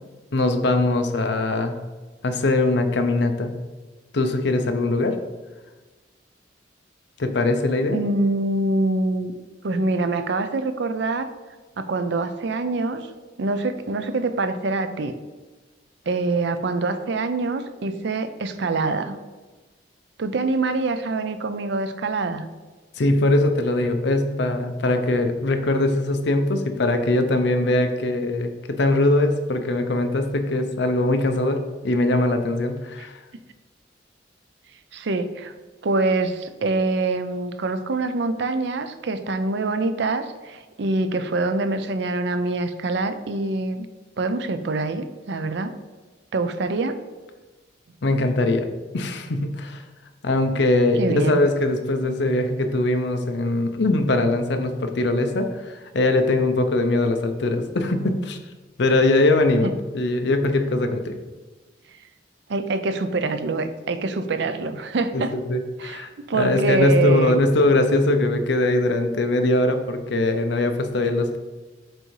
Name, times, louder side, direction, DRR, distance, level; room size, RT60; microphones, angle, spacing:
voice 1, 0.3-1.8 2.2-3.5 4.1-5.2 7.2-8.0 23.0-33.2 48.0-48.7 48.9-49.8 50.2-58.4 58.8-61.1 65.1-71.4, left 2 dB, 65° left, 6 dB, 0.6 m, -21 dB
voice 2, 7.9-9.3 9.6-11.3 11.8-13.1 13.4-15.1 16.1-19.2 20.2-22.5 34.9-35.5 35.8-43.9 44.2-45.7 46.3-47.0 51.0-51.4 59.6-59.7 62.5-65.3 65.8-67.4, right 3 dB, 65° right, 10 dB, 0.5 m, -25 dB
7.5 x 2.7 x 4.6 m, 1.2 s
head